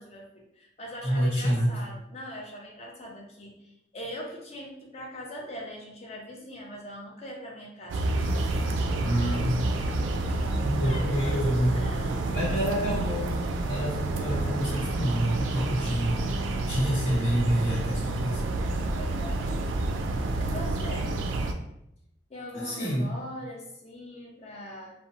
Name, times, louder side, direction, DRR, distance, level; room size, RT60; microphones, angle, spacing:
voice 1, 0.0-8.0 10.3-10.4 10.8-12.6 18.8-19.6 20.4-21.1 22.3-24.9, equal, 35° left, -1 dB, 0.5 m, -41 dB
voice 2, 1.0-1.7 9.0-9.5 10.6-11.7 12.3-13.3 13.7-16.3 16.7-18.4 22.5-23.1, equal, 75° left, -9 dB, 0.9 m, -27 dB
sound 1, 7.9-21.5, right 2 dB, 85° right, 0.3 m, -29 dB
2.8 x 2.1 x 2.8 m, 0.80 s
head